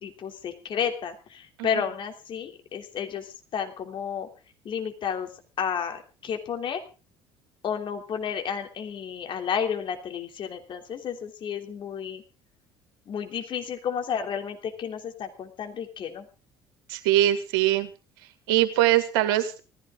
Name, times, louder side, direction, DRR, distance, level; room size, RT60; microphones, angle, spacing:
voice 1, 0.0-4.3 4.6-5.3 5.6-6.8 7.6-12.2 13.1-16.2, left 7 dB, 40° left, 5 dB, 3.2 m, -31 dB
voice 2, 16.9-17.9 18.5-19.6, right 14 dB, 65° right, 10 dB, 2.1 m, -22 dB
19.0 x 15.0 x 3.9 m, 0.34 s
figure-of-eight pair, 55°, 12 cm